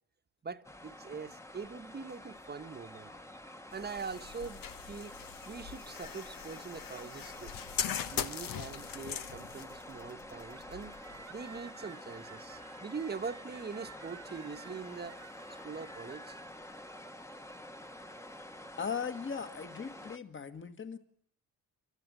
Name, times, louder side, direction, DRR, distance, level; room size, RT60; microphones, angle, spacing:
voice 1, 0.4-3.1 3.7-5.1 5.5-7.5 8.1-10.9 11.3-15.2 15.6-16.4, right 5 dB, 30° right, 1.2 m, -43 dB
sound 1, 0.6-20.2, left 1 dB, 10° left, 1.2 m, -48 dB
sound 2, 3.7-11.6, left 9 dB, 70° left, 1.3 m, -41 dB
sound 3, 10.4-17.0, right 7 dB, 50° right, 1.0 m, -55 dB
voice 2, 18.8-21.0, left 6 dB, 35° left, 1.8 m, -38 dB
29.0 x 12.0 x 9.0 m
cardioid pair, 100°, 34 cm